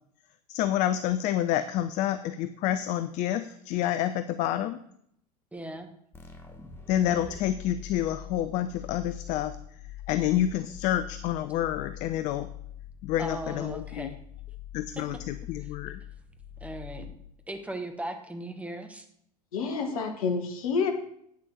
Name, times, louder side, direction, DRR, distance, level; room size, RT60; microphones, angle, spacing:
voice 1, 0.5-4.8 6.9-9.6 10.1-12.5 13.0-14.1 14.7-16.0, left 11 dB, 35° left, 12 dB, 0.5 m, -28 dB
voice 2, 5.5-5.9 13.2-14.1 15.0-15.1 16.6-17.1 17.5-19.0, right 1 dB, 5° right, 5 dB, 1.3 m, -37 dB
ab pulse atmos, 6.1-17.6, left 10 dB, 10° left, 1.3 m, -44 dB
voice 3, 19.5-20.9, left 5 dB, 60° left, 6 dB, 1.7 m, -28 dB
9.2 x 6.7 x 6.3 m, 0.68 s
figure-of-eight pair, 80°, 20 cm